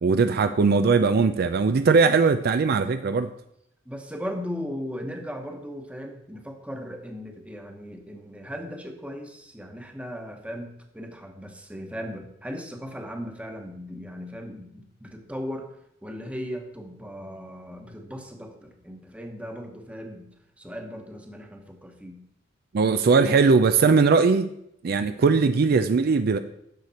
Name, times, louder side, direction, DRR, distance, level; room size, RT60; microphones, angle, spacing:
voice 1, 0.0-3.3 22.7-24.5 24.8-26.4, right 4 dB, 55° right, 10 dB, 0.4 m, -20 dB
voice 2, 3.8-15.8 16.0-20.3 20.6-22.2 25.2-25.4, equal, 5° right, 3 dB, 1.1 m, -37 dB
10.5 x 6.7 x 4.2 m, 0.75 s
head